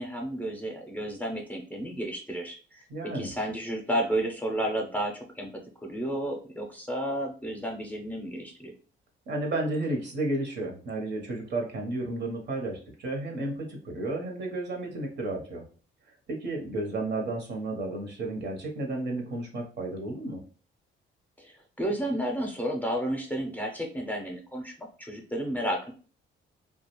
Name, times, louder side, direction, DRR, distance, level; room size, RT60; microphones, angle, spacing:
voice 1, 0.0-8.7 21.4-25.9, right 1 dB, 10° left, 1 dB, 0.6 m, -32 dB
voice 2, 2.9-3.3 9.3-15.6 16.3-20.4, right 2 dB, 60° right, 1 dB, 1.0 m, -32 dB
2.4 x 2.3 x 3.0 m, 0.39 s
cardioid pair, 90°, 20 cm